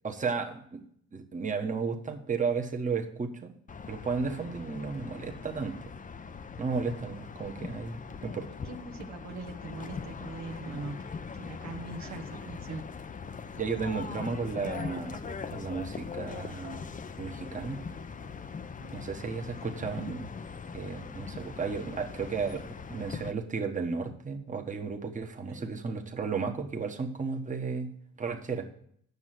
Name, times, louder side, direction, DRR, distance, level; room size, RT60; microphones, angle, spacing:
voice 1, 0.0-0.8 1.1-3.5 3.9-5.7 6.6-8.5 12.0-12.1 13.6-15.2 15.5-16.9 17.2-17.8 18.9-20.3 20.7-27.9 28.2-28.7, right 5 dB, 25° right, 3 dB, 1.3 m, -34 dB
sound 1, 3.7-23.3, left 5 dB, 25° left, 0.6 m, -41 dB
voice 2, 8.6-12.9 18.8-19.0 25.4-25.7, right 3 dB, 65° right, 3 dB, 1.0 m, -42 dB
8.2 x 6.2 x 7.7 m, 0.66 s
cardioid pair, 90°, 30 cm